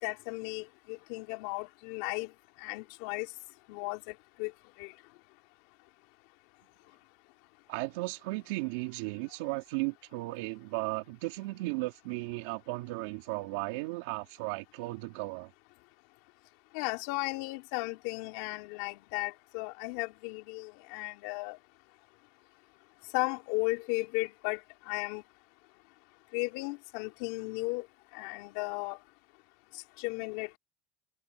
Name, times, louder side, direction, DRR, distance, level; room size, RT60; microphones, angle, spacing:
voice 1, 0.0-2.3 2.6-3.3 3.7-4.0 4.4-4.5 4.8-4.9 16.7-21.6 23.1-24.6 24.9-25.2 26.3-27.8 28.1-29.0 30.0-30.5, left 25 dB, 80° left, 3.4 m, -35 dB
voice 2, 7.7-15.5, right 23 dB, 85° right, 3.4 m, -35 dB
supercardioid pair, 105°, 0 cm